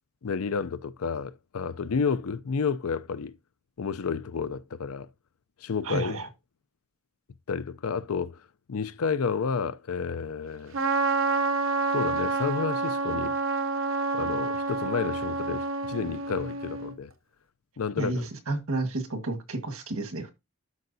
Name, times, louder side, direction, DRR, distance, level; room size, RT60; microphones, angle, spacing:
voice 1, 0.2-3.3 3.8-5.1 5.6-6.2 7.5-8.4 8.7-10.8 11.9-13.3 14.1-17.1 17.8-18.3, left 5 dB, 85° left, 0.5 m, -30 dB
voice 2, 5.8-6.3 18.0-20.3, right 2 dB, 80° right, 1.6 m, -31 dB
Trumpet, 10.7-16.9, right 4 dB, 65° right, 0.7 m, -28 dB
12.0 x 4.7 x 2.7 m
head